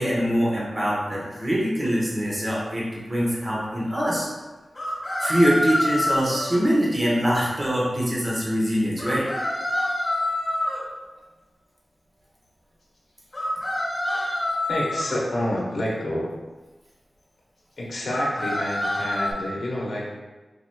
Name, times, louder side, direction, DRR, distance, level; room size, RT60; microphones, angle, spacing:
voice 1, 0.0-4.3 5.2-9.2, equal, 30° right, -5 dB, 1.2 m, -23 dB
sound 1, 1.8-1.9 4.7-6.6 9.0-10.8 13.3-15.2 18.1-19.3, left 1 dB, 45° left, 1.5 m, -26 dB
voice 2, 14.7-16.4 17.8-20.1, left 1 dB, 65° left, -4 dB, 0.8 m, -28 dB
4.8 x 3.0 x 2.2 m, 1.2 s
cardioid pair, 55°, 0 cm